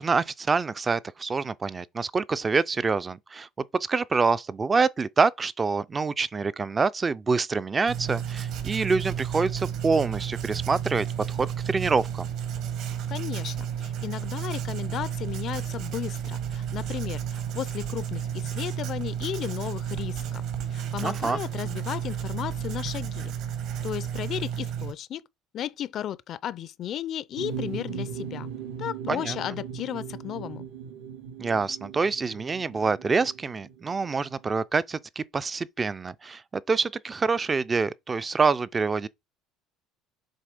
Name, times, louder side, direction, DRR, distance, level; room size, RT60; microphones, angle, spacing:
voice 1, 0.0-3.5 3.7-12.3 21.0-21.4 29.1-29.4 31.4-39.1, right 4 dB, 20° right, 0.4 m, -26 dB
Writing, 7.9-24.9, right 9 dB, 60° right, 1.6 m, -32 dB
voice 2, 13.1-20.4 20.7-23.3 23.8-25.2 25.5-28.5 28.8-30.7, left 11 dB, 45° left, 0.4 m, -34 dB
sound 1, 27.4-34.6, right 7 dB, 80° right, 1.5 m, -39 dB
7.5 x 3.6 x 5.0 m
cardioid pair, 135°, 0 cm